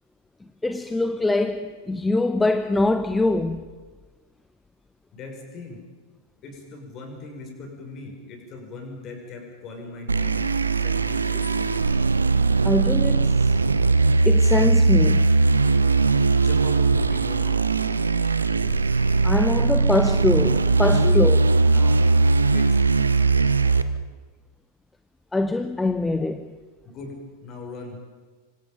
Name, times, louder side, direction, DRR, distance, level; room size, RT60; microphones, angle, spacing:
voice 1, 0.6-3.6 12.6-13.6 14.2-15.3 18.2-18.3 18.9-21.4 25.3-26.5, left 2 dB, 10° left, 0.9 m, -24 dB
voice 2, 5.1-5.8 6.4-11.7 16.4-17.6 20.9-21.3 21.6-22.0 22.3-22.8 26.8-28.0, left 3 dB, 35° left, 6.5 m, -38 dB
sound 1, 10.1-23.8, right 3 dB, 75° right, 1.0 m, -19 dB
26.0 x 25.5 x 5.4 m
figure-of-eight pair, 90°, 0 cm